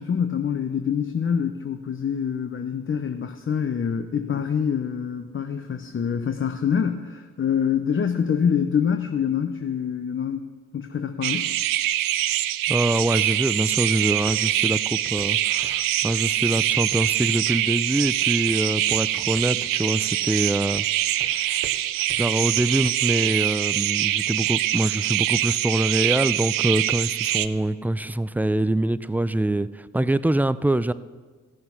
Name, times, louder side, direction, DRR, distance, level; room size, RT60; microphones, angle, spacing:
voice 1, 0.0-10.4 10.7-11.5, left 7 dB, 35° left, 7 dB, 0.7 m, -25 dB
sound 1, 11.2-27.5, right 13 dB, 70° right, 0.5 m, -24 dB
voice 2, 12.7-20.9 21.2-21.7 22.1-30.9, right 1 dB, 5° right, 16 dB, 0.3 m, -24 dB
Walk footsteps, 14.3-14.4 14.7-14.9 15.2-15.4 15.6-16.3 16.5-16.7 17.0-17.3 18.0-18.2 18.5-19.1 19.4-19.5 19.8-19.9 20.3-20.4 20.7-20.9 21.2-21.3 21.6-21.8 22.1-22.2 22.6-22.8, right 4 dB, 30° right, 0.9 m, -44 dB
14.0 x 6.5 x 5.7 m, 1.5 s
hypercardioid pair, 45°, 35 cm